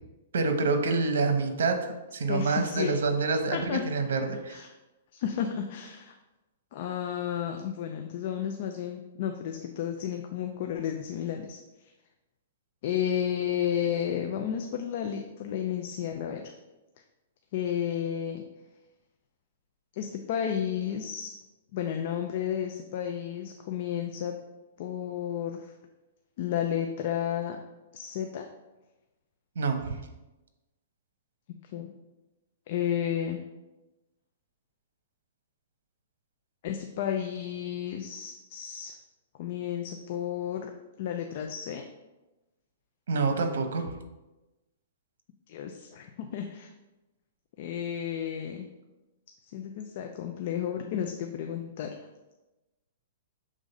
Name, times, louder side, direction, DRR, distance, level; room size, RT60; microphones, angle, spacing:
voice 1, 0.3-4.6 29.6-30.0 43.1-43.8, right 4 dB, 80° right, 6 dB, 1.0 m, -27 dB
voice 2, 2.3-2.9 3.5-3.8 4.2-4.7 5.1-6.1 6.7-11.6 12.8-16.5 17.5-18.4 20.0-21.3 21.7-24.3 24.8-25.7 26.4-27.6 27.9-28.4 31.7-31.9 32.7-33.4 36.6-38.9 39.4-40.7 41.0-41.8 45.5-46.7 47.6-48.7 49.5-51.9, left 9 dB, 45° left, 4 dB, 0.5 m, -32 dB
6.5 x 3.7 x 5.3 m, 1.1 s
hypercardioid pair, 165°, 0 cm